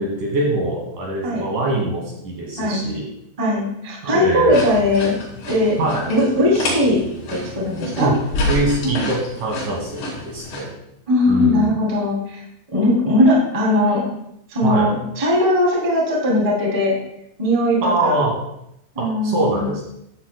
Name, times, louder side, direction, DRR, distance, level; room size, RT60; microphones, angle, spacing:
voice 1, 0.0-3.0 4.0-4.7 5.8-6.0 8.0-8.2 8.5-10.7 11.3-11.7 14.6-14.9 17.8-18.3 19.0-19.8, right 2 dB, 55° right, -3 dB, 3.4 m, -23 dB
voice 2, 3.4-5.1 5.5-5.8 6.1-7.0 7.3-8.1 11.1-12.4 12.7-14.0 14.5-17.0 17.4-18.2 18.9-19.7, left 1 dB, 10° right, -4 dB, 2.0 m, -19 dB
sound 1, 4.5-10.6, left 1 dB, 65° left, 4.7 m, -28 dB
14.5 x 11.5 x 2.2 m, 0.79 s
omnidirectional pair, 5.1 m